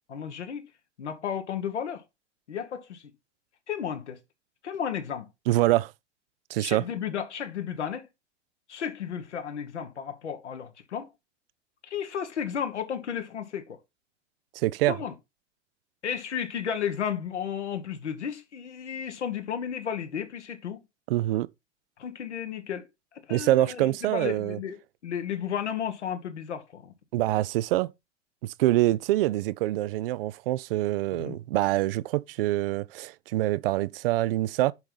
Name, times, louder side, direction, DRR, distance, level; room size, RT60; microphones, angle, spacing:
voice 1, 0.1-0.7 1.0-2.0 2.5-3.1 3.7-4.2 4.6-5.3 6.6-8.1 8.7-11.1 11.8-13.8 14.9-15.1 16.0-20.8 22.0-22.9 23.1-24.8 25.0-26.9 31.1-31.4, left 8 dB, 70° left, 1.6 m, -33 dB
voice 2, 5.5-5.9 6.5-6.8 14.5-15.0 21.1-21.5 23.3-24.6 27.1-27.9 28.4-34.7, right 16 dB, 55° right, 0.5 m, -25 dB
6.7 x 5.8 x 3.9 m
figure-of-eight pair, 85°, 36 cm